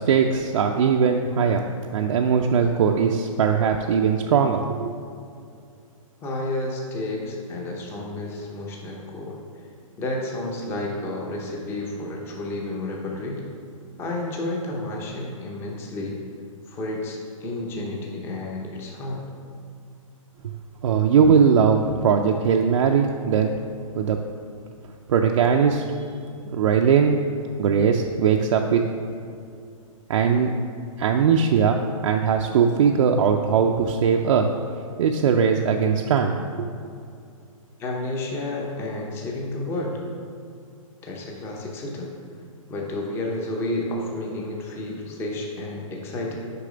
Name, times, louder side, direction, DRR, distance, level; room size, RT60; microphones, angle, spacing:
voice 1, 0.0-1.6 1.9-4.9 20.8-23.6 23.9-24.2 25.1-26.0 26.5-27.2 27.6-28.8 30.1-30.5 31.0-34.5 35.0-36.7, right 6 dB, 65° right, 2 dB, 0.5 m, -20 dB
voice 2, 6.2-9.4 10.0-13.4 14.0-16.2 16.7-19.3 37.8-40.0 41.0-42.1 42.7-46.4, left 2 dB, 15° left, -1 dB, 0.7 m, -31 dB
6.7 x 4.8 x 5.0 m, 2.4 s
hypercardioid pair, 155°, 18 cm